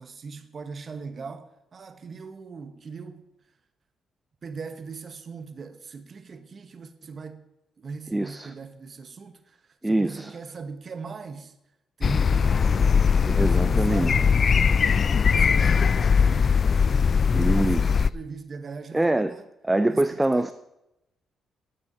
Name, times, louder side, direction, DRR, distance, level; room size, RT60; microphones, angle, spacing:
voice 1, 0.0-3.3 4.4-7.5 7.8-11.5 12.0-14.4 15.2-17.1 17.5-19.4 19.9-20.5, right 4 dB, 45° right, 1.1 m, -40 dB
voice 2, 8.1-8.5 9.8-10.3 13.2-14.1 17.3-18.1 18.9-20.5, right 2 dB, 10° right, 0.6 m, -25 dB
sound 1, 12.0-18.1, left 6 dB, 45° left, 0.4 m, -20 dB
9.4 x 8.3 x 8.6 m
cardioid pair, 90°, 0 cm